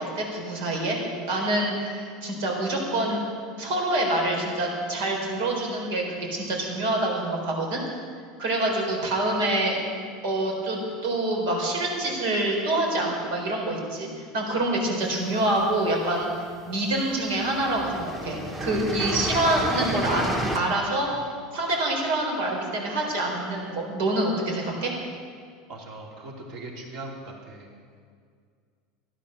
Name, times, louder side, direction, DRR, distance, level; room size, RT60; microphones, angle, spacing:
voice 1, 0.2-1.0 1.3-3.2 3.6-7.8 8.4-9.8 10.2-16.3 16.7-21.1 21.5-24.9, right 1 dB, 70° right, 0 dB, 4.3 m, -26 dB
sound 1, 15.2-16.1 16.9-17.1 17.4-20.6, right 1 dB, 10° right, 1.4 m, -31 dB
voice 2, 25.7-27.7, right 2 dB, 45° right, 0 dB, 2.8 m, -40 dB
15.0 x 12.0 x 6.5 m, 2.1 s
supercardioid pair, 165°, 0 cm